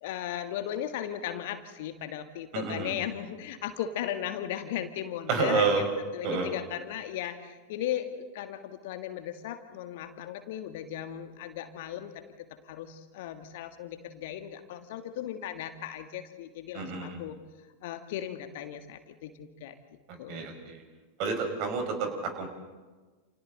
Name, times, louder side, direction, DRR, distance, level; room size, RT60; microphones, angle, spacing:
voice 1, 0.0-5.8 6.1-12.2 12.6-17.4 17.8-19.8 20.2-20.5, left 11 dB, 50° left, 8 dB, 1.7 m, -36 dB
voice 2, 2.5-2.9 5.3-5.8 6.2-6.5 16.7-17.2 20.3-20.8 21.2-22.5, right 5 dB, 45° right, 4 dB, 5.2 m, -29 dB
29.0 x 29.0 x 4.0 m, 1.3 s
figure-of-eight pair, 90°, 0 cm